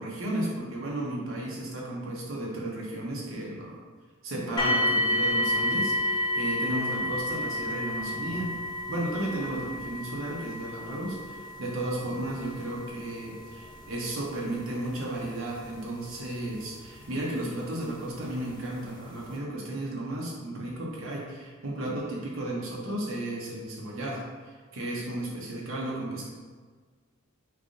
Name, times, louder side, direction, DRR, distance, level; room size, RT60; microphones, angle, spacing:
voice 1, 0.0-3.8 4.2-8.5 8.9-26.3, right 1 dB, 70° right, -3 dB, 0.9 m, -34 dB
sound 1, 4.6-17.5 18.3-18.4 19.0-19.1, left 1 dB, 20° left, 0.4 m, -31 dB
3.5 x 2.5 x 3.7 m, 1.5 s
head